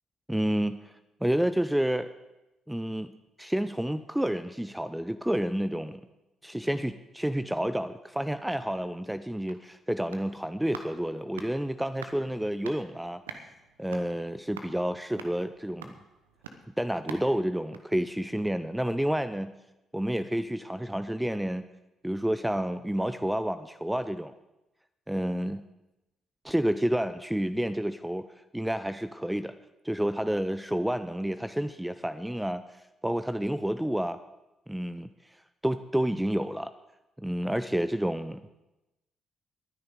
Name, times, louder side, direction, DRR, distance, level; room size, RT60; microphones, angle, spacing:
voice 1, 0.3-0.9 1.2-2.1 2.7-3.1 3.4-6.0 6.4-13.2 13.8-16.0 16.8-19.5 19.9-21.6 22.0-24.3 25.1-25.6 26.4-28.3 28.5-29.6 29.8-34.2 34.7-35.1 35.6-36.7 37.2-38.5, equal, 5° right, 12 dB, 0.5 m, -29 dB
sound 1, 9.4-18.7 19.0-19.1, right 6 dB, 80° right, 0.8 m, -48 dB
21.5 x 9.6 x 3.8 m, 0.98 s
figure-of-eight pair, 45°, 0 cm